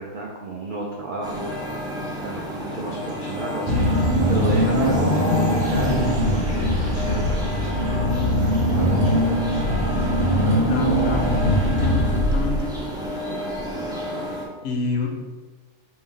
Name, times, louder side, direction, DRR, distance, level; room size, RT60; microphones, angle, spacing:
voice 1, 0.0-1.5 2.2-9.6, right 2 dB, 65° right, -3 dB, 0.5 m, -32 dB
sound 1, 1.2-14.5, equal, 5° right, 0.3 m, -31 dB
Car / Engine, 3.7-12.8, equal, 35° right, 1.2 m, -21 dB
voice 2, 10.7-11.3 11.6-12.7 14.6-15.1, left 4 dB, 65° left, 1 dB, 0.8 m, -28 dB
4.4 x 2.7 x 3.7 m, 1.3 s
omnidirectional pair, 1.6 m